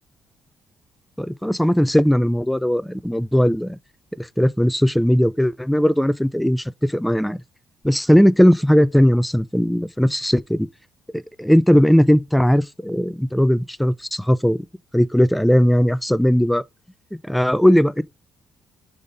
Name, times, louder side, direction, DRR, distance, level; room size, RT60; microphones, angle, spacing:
voice 1, 1.2-3.8 4.2-7.4 7.8-10.7 11.1-14.7 14.9-16.6 17.2-18.0, equal, ahead, 0.4 m, -18 dB
5.0 x 4.2 x 5.0 m
cardioid pair, 90°, 0 cm